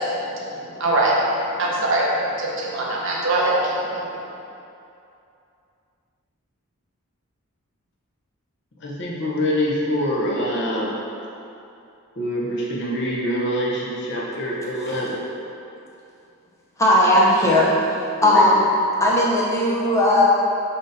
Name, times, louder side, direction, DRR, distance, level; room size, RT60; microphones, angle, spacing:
voice 1, 0.0-4.3, right 1 dB, 60° right, -4 dB, 0.6 m, -23 dB
voice 2, 8.8-11.0 12.2-15.2 18.2-18.4, equal, 55° left, -5 dB, 0.7 m, -25 dB
voice 3, 16.8-17.7 18.2-18.6 19.0-20.2, left 1 dB, 15° left, -6 dB, 0.5 m, -17 dB
3.9 x 3.6 x 2.6 m, 2.7 s
head